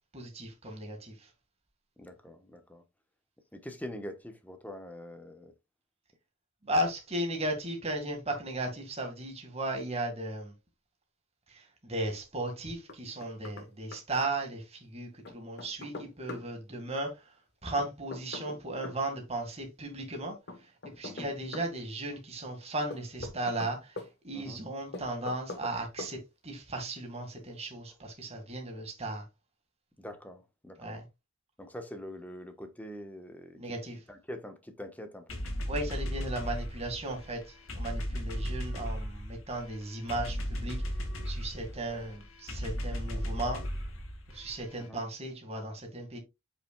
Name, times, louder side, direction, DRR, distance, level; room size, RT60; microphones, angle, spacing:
voice 1, 0.1-1.3 6.6-10.5 11.5-17.3 17.6-20.7 21.0-29.2 30.8-31.0 33.6-34.0 35.7-40.8 41.3-43.6 44.3-46.2, right 1 dB, 30° right, 1.9 m, -36 dB
voice 2, 2.0-2.8 3.5-5.5 21.0-21.3 24.3-24.6 30.0-31.0 31.6-33.6 34.1-35.4 44.7-45.0, equal, 10° left, 1.1 m, -44 dB
Knock, 12.9-13.7 13.9-14.0 15.2-16.5 17.8-19.0 20.5-21.7 22.9-24.1 24.9-25.7 26.0-26.1, left 3 dB, 55° left, 1.3 m, -42 dB
sound 1, 35.3-44.9, equal, 80° left, 2.0 m, -36 dB
7.7 x 5.8 x 2.3 m
head